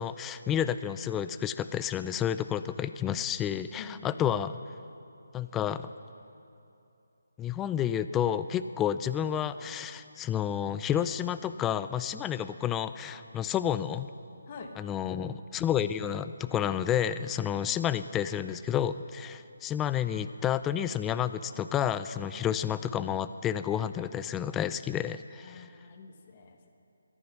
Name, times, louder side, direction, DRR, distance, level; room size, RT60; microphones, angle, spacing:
voice 1, 0.0-4.6 5.3-5.9 7.4-14.1 14.8-25.7, left 9 dB, 10° left, 13 dB, 0.3 m, -30 dB
voice 2, 3.8-4.2 14.5-14.7 25.4-26.7, left 5 dB, 35° left, 4 dB, 1.4 m, -47 dB
23.0 x 10.0 x 5.9 m, 2.7 s
figure-of-eight pair, 160°, 0 cm